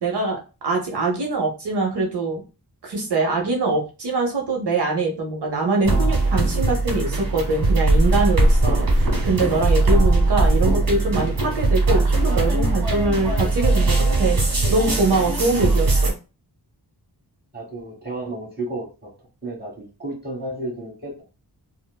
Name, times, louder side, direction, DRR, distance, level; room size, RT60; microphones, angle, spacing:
voice 1, 0.0-2.4 2.8-14.4 14.7-16.1, right 3 dB, 75° right, 1 dB, 0.8 m, -23 dB
sound 1, 5.8-16.1, right 2 dB, 55° right, 1.2 m, -20 dB
voice 2, 17.5-19.1 19.4-21.2, right 2 dB, 25° right, -2 dB, 1.2 m, -32 dB
4.3 x 2.0 x 2.2 m, 0.32 s
wide cardioid pair, 120°, 41 cm